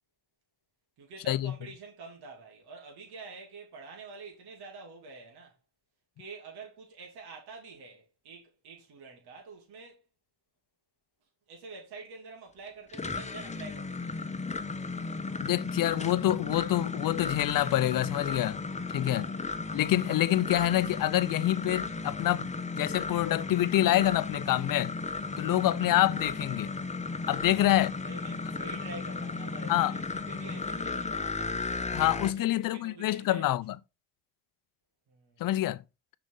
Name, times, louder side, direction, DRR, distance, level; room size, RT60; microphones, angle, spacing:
voice 1, 1.0-5.6 6.2-10.0 11.5-14.3 18.9-19.5 27.4-31.6 32.3-33.6 35.1-35.5, right 3 dB, 70° right, 2.8 m, -47 dB
sound 1, 12.7-32.3, left 3 dB, 15° left, 1.0 m, -35 dB
voice 2, 15.4-18.6 18.9-19.3 19.7-24.9 25.4-26.7 27.3-27.9 29.7-29.9 31.9-33.8 35.4-35.8, left 14 dB, 55° left, 0.6 m, -27 dB
6.3 x 5.0 x 3.9 m
supercardioid pair, 60°, 40 cm